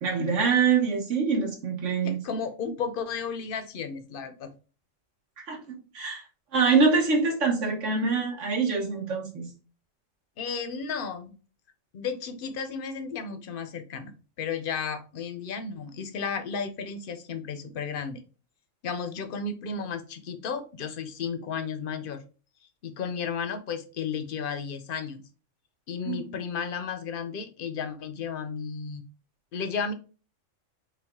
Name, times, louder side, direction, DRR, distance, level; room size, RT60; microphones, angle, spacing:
voice 1, 0.0-2.1 5.5-6.2 6.5-9.5 26.1-26.3, right 5 dB, 70° right, 0 dB, 1.6 m, -25 dB
voice 2, 2.0-4.5 10.4-11.3 11.9-18.2 18.8-22.2 22.8-25.2 25.9-29.0 29.5-29.9, left 6 dB, 55° left, 9 dB, 0.7 m, -33 dB
5.6 x 2.4 x 3.5 m, 0.35 s
omnidirectional pair, 1.3 m